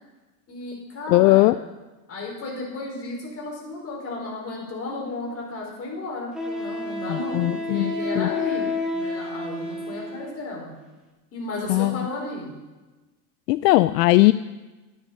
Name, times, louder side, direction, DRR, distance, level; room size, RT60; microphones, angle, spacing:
voice 1, 0.5-1.5 2.1-10.7 11.3-12.5, left 2 dB, 30° left, -2 dB, 5.1 m, -34 dB
voice 2, 1.1-1.6 7.1-8.3 11.7-12.0 13.5-14.3, left 19 dB, 75° left, 14 dB, 0.5 m, -19 dB
Wind instrument woodwind instrument, 5.1-5.2 6.3-10.4, left 3 dB, ahead, 2.1 m, -30 dB
11.5 x 9.8 x 5.4 m, 1.2 s
supercardioid pair, 125°, 50 cm